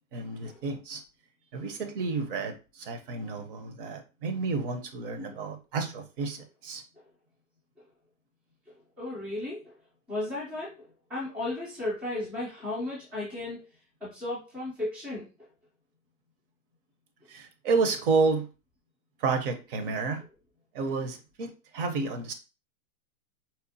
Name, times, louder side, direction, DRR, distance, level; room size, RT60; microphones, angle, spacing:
voice 1, 0.1-1.0 1.5-6.8 17.3-18.5 19.2-20.2 20.7-22.3, right 4 dB, 40° right, 7 dB, 0.7 m, -30 dB
voice 2, 9.0-9.7 10.1-10.8 11.1-13.6 14.0-15.3, left 2 dB, 5° right, -7 dB, 0.3 m, -34 dB
4.1 x 2.1 x 2.6 m, 0.31 s
hypercardioid pair, 150°, 42 cm